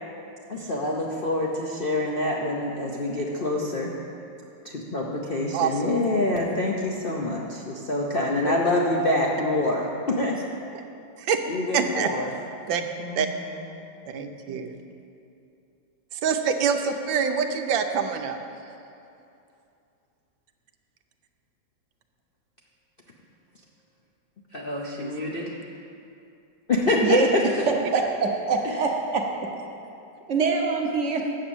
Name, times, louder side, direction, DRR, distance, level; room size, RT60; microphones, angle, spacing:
voice 1, 0.5-3.9 4.6-10.4 11.5-12.3 13.0-13.3 24.5-25.6 26.7-27.4 28.6-28.8, left 2 dB, 55° left, -2 dB, 0.6 m, -26 dB
voice 2, 5.5-6.0 8.4-8.7 11.2-11.4 11.7-12.1 12.7-12.8 13.2-13.3 14.1-14.7 16.1-18.4 25.0-25.1, right 6 dB, 80° right, 6 dB, 1.4 m, -26 dB
voice 3, 27.9-29.2 30.3-31.2, right 4 dB, 50° right, 1 dB, 1.0 m, -24 dB
8.8 x 7.3 x 7.0 m, 2.6 s
omnidirectional pair, 2.1 m